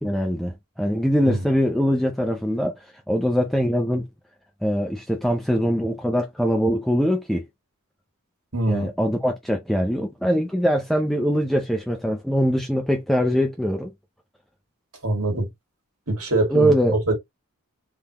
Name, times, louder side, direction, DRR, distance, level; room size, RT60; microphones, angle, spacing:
voice 1, 0.0-2.7 3.1-4.0 4.6-7.4 8.7-13.9 16.5-16.9, equal, ahead, 0.5 m, -22 dB
voice 2, 8.5-8.9 15.0-15.5 16.1-17.1, right 2 dB, 80° right, 2.1 m, -23 dB
3.8 x 3.5 x 2.9 m
head